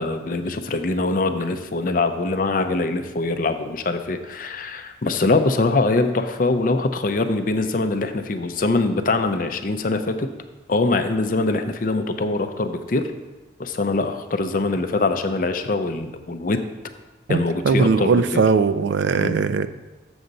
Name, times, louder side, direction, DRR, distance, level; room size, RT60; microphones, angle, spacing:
voice 1, 0.0-10.3 10.7-13.1 13.6-16.6 17.3-18.4 19.2-19.3, left 3 dB, 45° left, 8 dB, 0.5 m, -23 dB
voice 2, 17.6-19.7, right 4 dB, 70° right, 12 dB, 0.3 m, -19 dB
7.0 x 6.5 x 4.0 m, 1.2 s
head